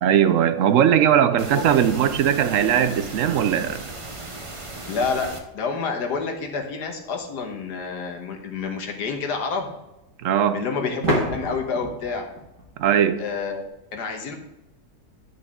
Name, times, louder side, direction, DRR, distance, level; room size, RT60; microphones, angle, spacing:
voice 1, 0.0-3.8 10.2-10.7 12.8-13.2, right 9 dB, 70° right, 11 dB, 0.8 m, -19 dB
sound 1, 1.4-5.4, right 2 dB, 35° right, 0.5 m, -37 dB
voice 2, 4.9-9.7 10.5-12.3 13.2-14.3, left 5 dB, 85° left, 3 dB, 1.7 m, -28 dB
sound 2, 8.0-8.1 11.0-13.7, right 1 dB, 50° right, 2.0 m, -29 dB
10.5 x 6.2 x 3.6 m, 0.92 s
omnidirectional pair, 1.7 m